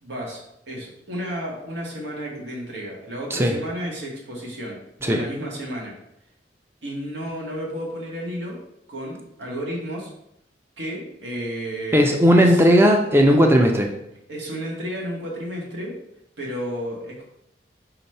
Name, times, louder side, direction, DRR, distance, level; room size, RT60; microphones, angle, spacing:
voice 1, 0.0-4.8 5.0-6.0 6.8-8.6 8.9-10.1 10.8-12.6 14.3-15.9 16.4-17.2, equal, 85° right, -2 dB, 1.9 m, -32 dB
voice 2, 11.9-13.9, equal, 15° right, 2 dB, 0.5 m, -16 dB
5.7 x 3.1 x 5.5 m, 0.79 s
head